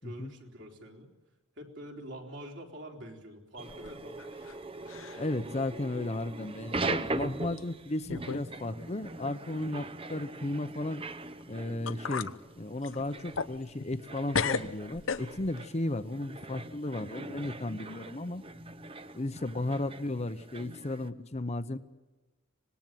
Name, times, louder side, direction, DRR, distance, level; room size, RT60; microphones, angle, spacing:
voice 1, 0.0-1.1 1.6-4.2 17.1-17.3, right 1 dB, 60° right, 0 dB, 3.9 m, -46 dB
sound 1, 3.6-21.1, right 3 dB, 25° right, 0.8 m, -41 dB
sound 2, 3.7-4.6 4.9-5.3 5.8-5.9 6.7-6.9 7.6-7.7 8.1-8.5 8.8-8.9 11.4-11.5 11.9-12.4 12.8-14.1 14.3-15.6, left 5 dB, 70° left, 0.8 m, -34 dB
voice 2, 5.1-11.0 11.5-18.4 19.1-21.8, left 2 dB, 30° left, 11 dB, 0.8 m, -34 dB
25.5 x 19.5 x 9.2 m, 1.2 s
head